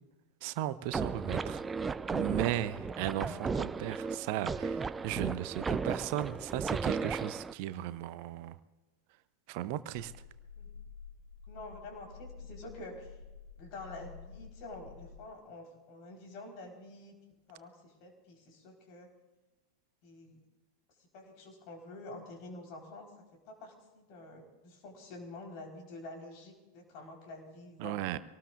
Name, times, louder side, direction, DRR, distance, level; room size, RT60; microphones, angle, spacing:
voice 1, 0.4-1.6 2.1-8.6 9.5-10.1 27.8-28.2, right 13 dB, 45° right, 14 dB, 0.7 m, -36 dB
sound 1, 0.9-7.5, right 4 dB, 15° right, 0.4 m, -35 dB
voice 2, 5.5-5.9 7.6-7.9 10.6-10.7 11.5-13.2 13.6-17.1 17.5-19.1 20.0-20.4 21.0-23.1 23.5-28.0, left 2 dB, 45° left, 1 dB, 4.2 m, -48 dB
sound 2, 9.9-15.3, left 6 dB, 85° left, 1.7 m, -50 dB
25.0 x 19.0 x 2.5 m, 1.1 s
figure-of-eight pair, 90°, 0 cm